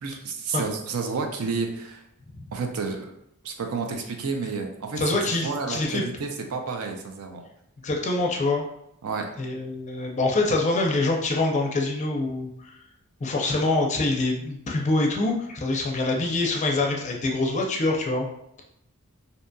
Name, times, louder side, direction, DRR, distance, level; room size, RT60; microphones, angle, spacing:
voice 1, 0.0-2.0 2.5-3.1 3.4-7.4 9.0-9.3, right 4 dB, 80° right, 3 dB, 0.5 m, -30 dB
voice 2, 5.0-6.0 7.8-8.6 9.4-12.7 13.2-18.3, left 2 dB, 35° left, 0 dB, 0.4 m, -25 dB
2.7 x 2.6 x 2.2 m, 0.79 s
head